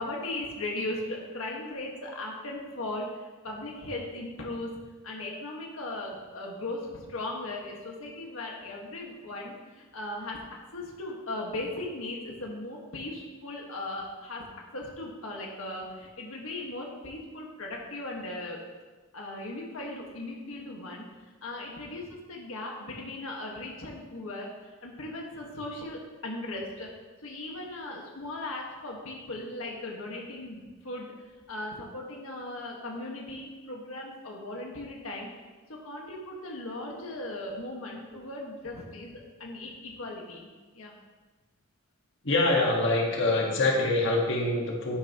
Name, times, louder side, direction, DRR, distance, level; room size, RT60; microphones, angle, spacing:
voice 1, 0.0-4.7 5.0-10.4 10.7-14.4 14.7-18.6 19.1-21.1 21.4-26.9 27.2-35.3 35.7-40.9, left 2 dB, 85° left, -1 dB, 1.7 m, -38 dB
voice 2, 42.2-45.0, left 2 dB, 60° left, -1 dB, 1.7 m, -25 dB
11.0 x 11.0 x 3.0 m, 1.3 s
head